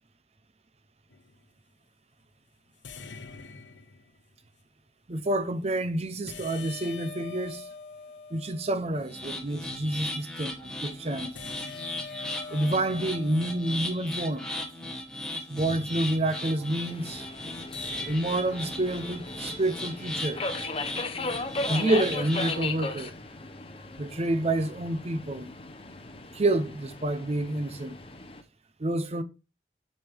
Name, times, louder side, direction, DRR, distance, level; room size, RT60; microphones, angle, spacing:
sound 1, 1.1-1.4 2.8-4.4 6.3-9.3 11.3-14.7 15.6-16.6 17.7-18.2, left 4 dB, 85° left, 0.8 m, -44 dB
voice 1, 5.1-7.7 8.3-11.3 12.5-14.5 15.5-17.2 18.1-20.4 21.6-23.1 24.0-25.5 26.3-28.0 28.8-29.2, right 1 dB, 35° right, 0.7 m, -28 dB
sound 2, 9.1-22.6, left 1 dB, 5° left, 1.1 m, -37 dB
Subway metro underground, 16.9-28.4, left 3 dB, 30° left, 0.7 m, -37 dB
7.5 x 5.4 x 3.4 m
head